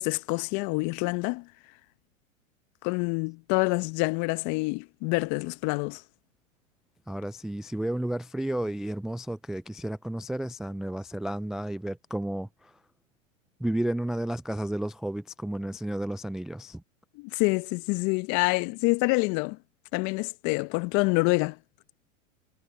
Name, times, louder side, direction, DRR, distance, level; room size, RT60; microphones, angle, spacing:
voice 1, 0.0-1.4 2.8-6.0 17.2-19.6 19.9-21.6, left 27 dB, 45° left, 1.2 m, -27 dB
voice 2, 7.1-12.8 13.6-16.8, right 1 dB, ahead, 0.4 m, -32 dB
hypercardioid pair, 105°, 40 cm